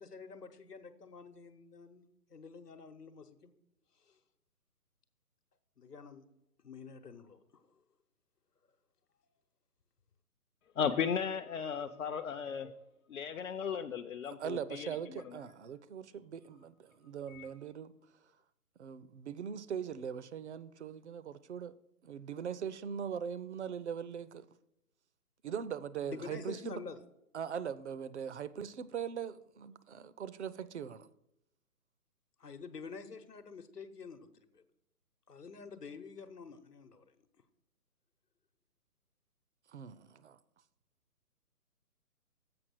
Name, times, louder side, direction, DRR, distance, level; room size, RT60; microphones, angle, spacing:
voice 1, 0.0-3.5 4.1-4.2 5.8-6.3 6.6-7.6 26.1-27.0 32.4-34.6 35.3-37.0, left 5 dB, 85° left, 1.0 m, -48 dB
voice 2, 10.8-12.7 13.1-15.2 17.3-17.5, left 7 dB, 60° left, 0.6 m, -36 dB
voice 3, 14.4-17.9 18.8-21.8 22.0-24.5 25.4-26.8 27.3-31.1 39.7-40.4, right 8 dB, 50° right, 0.5 m, -41 dB
7.7 x 5.5 x 6.2 m
figure-of-eight pair, 145°, 46 cm